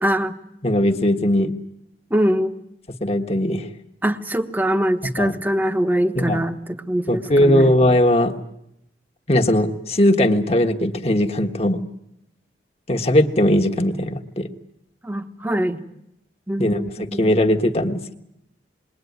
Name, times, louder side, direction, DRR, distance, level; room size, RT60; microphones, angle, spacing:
voice 1, 0.0-0.3 2.1-2.6 4.0-7.7 15.0-15.8 16.5-17.3, equal, 10° right, 7 dB, 1.1 m, -23 dB
voice 2, 0.6-1.5 3.0-3.7 5.2-5.4 6.1-6.4 7.1-8.3 9.3-11.8 12.9-14.5 16.6-18.1, left 1 dB, 35° left, 3 dB, 1.4 m, -19 dB
27.5 x 21.5 x 9.5 m, 0.84 s
head